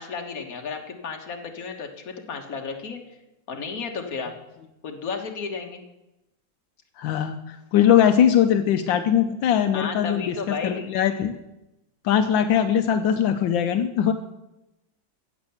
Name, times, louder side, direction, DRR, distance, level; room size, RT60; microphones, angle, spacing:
voice 1, 0.0-3.0 3.5-4.3 4.8-5.8 9.7-10.9, left 5 dB, 50° left, 3 dB, 1.9 m, -33 dB
voice 2, 7.0-11.3 12.0-14.1, left 9 dB, 80° left, 8 dB, 1.4 m, -21 dB
15.5 x 7.8 x 7.1 m, 0.94 s
omnidirectional pair, 2.1 m